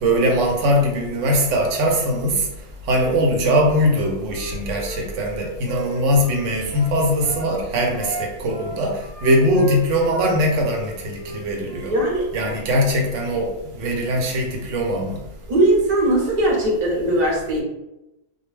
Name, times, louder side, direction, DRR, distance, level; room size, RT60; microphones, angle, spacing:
voice 1, 0.0-2.5 2.9-11.9 12.3-15.2, equal, 70° right, 0 dB, 0.9 m, -21 dB
Wind instrument woodwind instrument, 3.8-7.5 7.9-10.4 10.7-12.0, right 5 dB, 90° right, 1.2 m, -35 dB
voice 2, 11.9-12.5 15.5-17.6, right 1 dB, 45° right, -2 dB, 0.6 m, -19 dB
2.2 x 2.2 x 3.1 m, 0.92 s
omnidirectional pair, 1.4 m